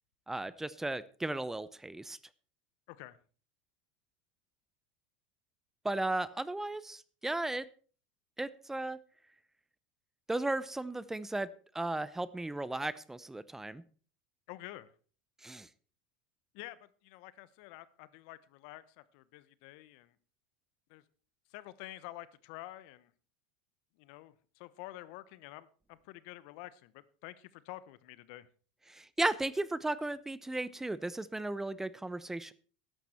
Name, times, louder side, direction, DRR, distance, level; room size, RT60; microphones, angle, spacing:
voice 1, 0.3-2.2 5.8-7.7 8.4-9.0 10.3-11.5 11.7-13.8 15.4-15.7 28.9-32.5, right 2 dB, 10° right, 18 dB, 0.7 m, -35 dB
voice 2, 14.5-14.9 16.5-20.2 20.9-21.0 21.5-23.1 24.0-28.5, left 16 dB, 65° left, 17 dB, 1.0 m, -49 dB
13.0 x 11.0 x 4.4 m, 0.40 s
hypercardioid pair, 100°, 5 cm